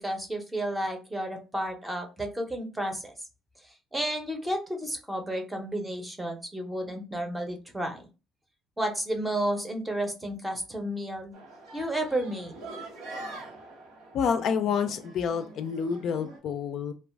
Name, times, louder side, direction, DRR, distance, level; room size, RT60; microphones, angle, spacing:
voice 1, 0.0-3.1 3.9-8.0 8.8-11.4 11.7-12.6, right 1 dB, 10° right, 3 dB, 0.6 m, -32 dB
sound 1, 11.3-16.4, right 2 dB, 85° right, 0.9 m, -44 dB
voice 2, 14.1-16.9, left 7 dB, 55° left, 8 dB, 0.3 m, -28 dB
2.4 x 2.2 x 3.3 m, 0.32 s
cardioid pair, 125°, 0 cm